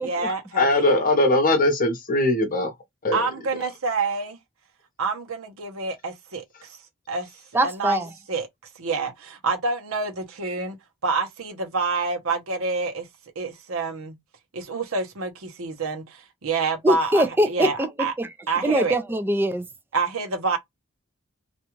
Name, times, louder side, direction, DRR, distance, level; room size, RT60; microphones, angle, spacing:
voice 1, 0.0-0.9 3.1-4.3 5.0-6.8 7.1-7.3 7.6-8.0 8.3-8.5 8.8-10.8 11.0-13.1 13.4-14.2 14.5-18.1 18.5-19.0 19.9-20.6, right 4 dB, 75° right, 0.8 m, -27 dB
voice 2, 0.5-2.7 3.0-3.3, left 2 dB, 40° left, 0.8 m, -20 dB
voice 3, 7.5-8.1 16.8-18.3 18.6-19.7, right 1 dB, 10° right, 0.4 m, -23 dB
2.5 x 2.3 x 2.9 m
head